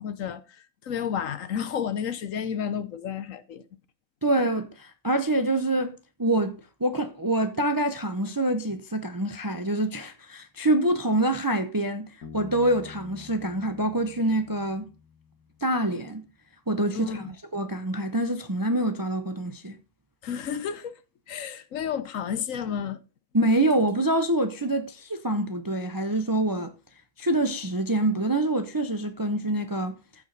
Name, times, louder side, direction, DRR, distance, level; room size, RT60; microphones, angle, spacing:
voice 1, 0.0-3.6 16.9-17.2 20.2-20.9 21.3-23.0, left 8 dB, 65° left, 1.1 m, -31 dB
voice 2, 4.2-14.9 15.6-16.3 16.7-17.3 17.5-19.8 23.3-26.7 27.2-30.0, right 1 dB, 25° right, 0.4 m, -26 dB
Bass guitar, 12.2-15.7, left 6 dB, 85° left, 2.0 m, -47 dB
14.5 x 4.9 x 4.0 m
omnidirectional pair, 1.6 m